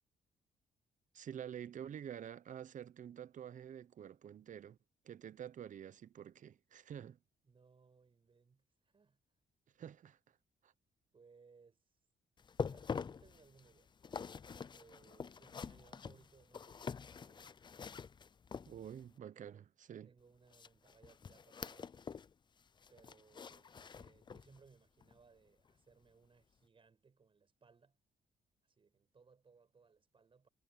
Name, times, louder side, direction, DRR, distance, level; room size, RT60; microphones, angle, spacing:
voice 1, 1.1-4.8 5.0-7.2 9.8-10.2 10.6-10.7 18.7-20.1, right 9 dB, 50° right, 0.8 m, -48 dB
voice 2, 7.4-9.2 11.1-11.8 12.7-13.9 14.7-17.5 19.3-19.6 20.0-22.0 22.9-28.0 28.6-30.5, right 5 dB, 35° right, 5.3 m, -66 dB
sound 1, 12.4-19.1 20.5-22.3 22.6-24.6 25.0-25.2 25.7-25.8, left 6 dB, 30° left, 0.4 m, -46 dB
cardioid pair, 120°, 17 cm